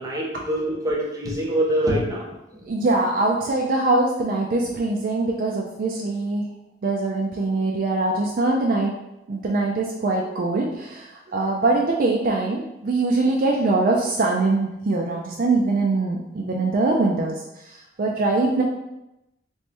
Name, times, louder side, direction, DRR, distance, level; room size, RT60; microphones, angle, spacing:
voice 1, 0.0-2.3, right 1 dB, 20° right, -3 dB, 0.8 m, -24 dB
voice 2, 2.7-6.4 6.8-9.0 9.3-17.4 18.0-18.6, right 2 dB, 50° right, -1 dB, 0.4 m, -22 dB
3.1 x 2.9 x 3.3 m, 0.91 s
head